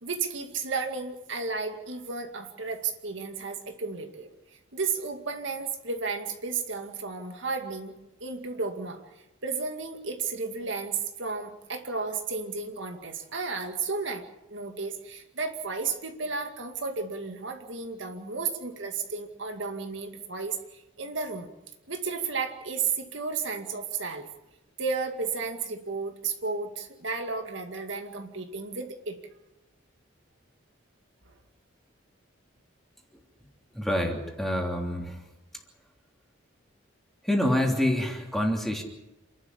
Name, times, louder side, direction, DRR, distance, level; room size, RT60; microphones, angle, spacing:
voice 1, 0.0-4.3 4.7-7.9 8.2-9.0 9.4-14.2 14.5-21.5 21.9-24.3 24.8-29.2 31.3-31.4, right 4 dB, 65° right, 5 dB, 2.2 m, -33 dB
voice 2, 33.7-35.2 37.2-38.8, left 1 dB, ahead, 1 dB, 3.2 m, -27 dB
28.0 x 12.0 x 9.9 m, 0.97 s
head